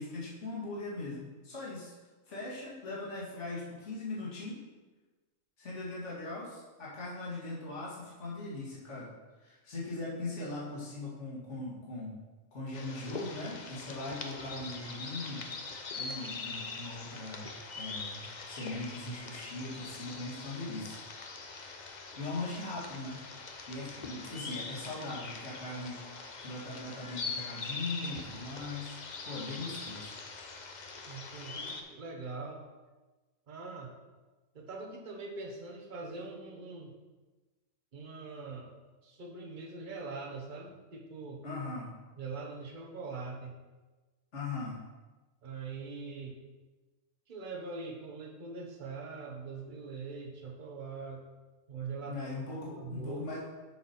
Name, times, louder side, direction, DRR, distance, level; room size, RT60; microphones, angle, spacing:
voice 1, 0.0-1.9 2.3-4.6 5.6-9.1 9.4-12.2 12.5-17.5 17.7-21.0 22.1-23.2 23.7-30.1 41.4-41.9 44.3-44.8 52.0-53.4, left 2 dB, 65° left, -6 dB, 2.1 m, -40 dB
sound 1, 12.7-31.8, left 4 dB, 45° left, 0.7 m, -43 dB
voice 2, 31.1-32.6 33.5-33.9 34.5-36.9 37.9-38.7 39.0-41.4 42.2-43.6 45.4-46.4 47.3-51.2 51.7-52.2 52.8-53.2, right 4 dB, 40° right, 1 dB, 1.1 m, -42 dB
7.1 x 6.0 x 4.2 m, 1.2 s
omnidirectional pair, 1.4 m